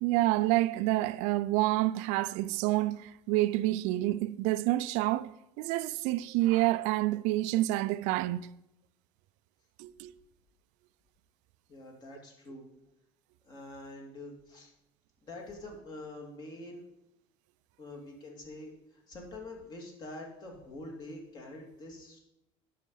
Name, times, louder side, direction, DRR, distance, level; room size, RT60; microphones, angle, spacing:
voice 1, 0.0-8.5 9.8-10.1, right 17 dB, 70° right, 0.4 m, -28 dB
voice 2, 11.7-12.7 13.4-14.7 15.2-16.8 17.8-22.2, left 2 dB, 35° left, 2.6 m, -45 dB
10.0 x 6.6 x 5.5 m
cardioid pair, 145°, 13 cm